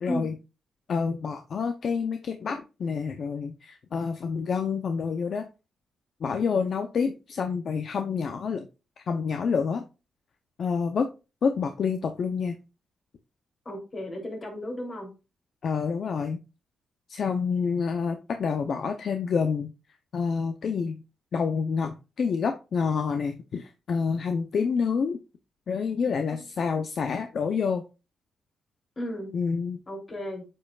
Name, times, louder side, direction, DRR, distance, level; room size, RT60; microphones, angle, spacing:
voice 1, 0.0-0.4 0.9-5.4 6.2-8.7 9.0-9.8 10.6-11.1 11.4-12.5 15.6-16.4 17.1-19.7 20.1-21.0 21.3-25.2 25.7-27.8 29.3-29.8, left 5 dB, 60° left, 6 dB, 0.7 m, -28 dB
voice 2, 13.6-15.1 26.3-26.4 29.0-29.3 29.9-30.4, equal, 35° left, 1 dB, 3.2 m, -34 dB
8.5 x 5.4 x 2.4 m, 0.29 s
cardioid pair, 85°, 0 cm